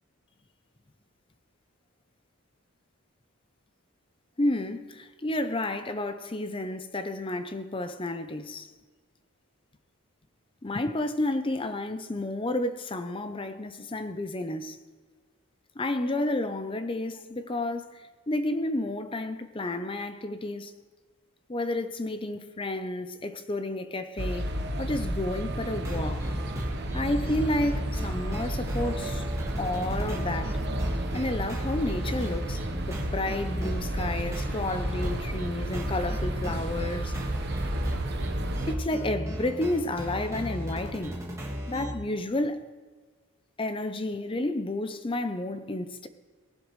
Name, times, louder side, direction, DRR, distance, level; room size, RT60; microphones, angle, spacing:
voice 1, 4.4-8.7 10.6-14.8 15.8-20.7 21.5-26.3 26.9-29.2 29.6-30.6 31.1-37.1 38.7-41.2 41.7-42.6 43.6-46.1, left 1 dB, 25° left, 0.6 m, -31 dB
sound 1, 24.2-38.7, right 1 dB, 50° right, 1.0 m, -32 dB
sound 2, 25.7-41.9, equal, 15° right, 1.7 m, -36 dB
18.0 x 11.0 x 3.2 m
head